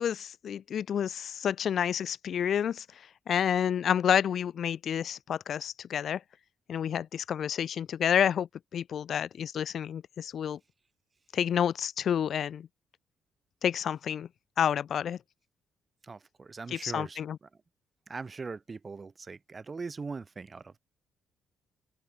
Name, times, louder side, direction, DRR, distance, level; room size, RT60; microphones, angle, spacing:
voice 1, 0.0-2.8 3.3-6.2 6.7-10.6 11.3-12.7 13.6-14.3 14.6-15.2 16.7-17.4, left 9 dB, 60° left, 0.5 m, -29 dB
voice 2, 16.0-17.5 18.1-20.8, right 4 dB, 30° right, 0.7 m, -41 dB
open air
cardioid pair, 90°, 0 cm